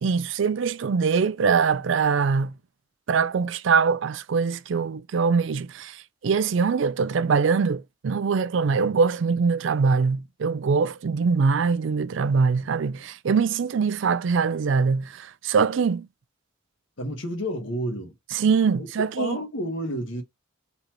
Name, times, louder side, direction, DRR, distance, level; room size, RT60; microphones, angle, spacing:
voice 1, 0.0-2.5 3.1-16.1 18.3-19.4, right 5 dB, 60° right, 0.4 m, -23 dB
voice 2, 17.0-18.2 18.8-18.9 19.2-20.2, equal, 65° left, 1.3 m, -30 dB
4.1 x 2.9 x 4.4 m
head